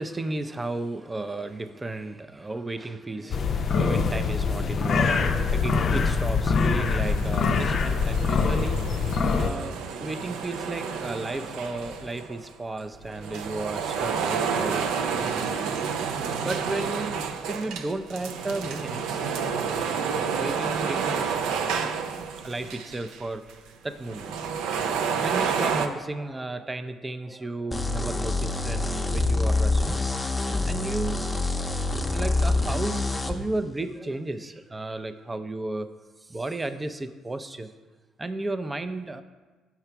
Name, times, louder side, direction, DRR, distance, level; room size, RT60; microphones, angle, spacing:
voice 1, 0.0-14.9 15.1-15.8 16.1-19.8 20.1-23.4 23.8-24.5 25.2-30.2 30.7-31.2 31.7-31.8 32.1-35.9 36.3-37.7 38.2-39.2, right 2 dB, 20° right, 11 dB, 0.5 m, -34 dB
sound 1, 3.3-9.5, left 5 dB, 50° left, 0.5 m, -24 dB
sound 2, 6.9-12.5 13.0-23.2 23.5-23.6 24.0-25.9, right 6 dB, 75° right, 0.4 m, -30 dB
sound 3, 27.7-33.3, left 2 dB, 15° left, 0.7 m, -26 dB
5.9 x 5.6 x 4.5 m, 1.3 s
hypercardioid pair, 60°, 0 cm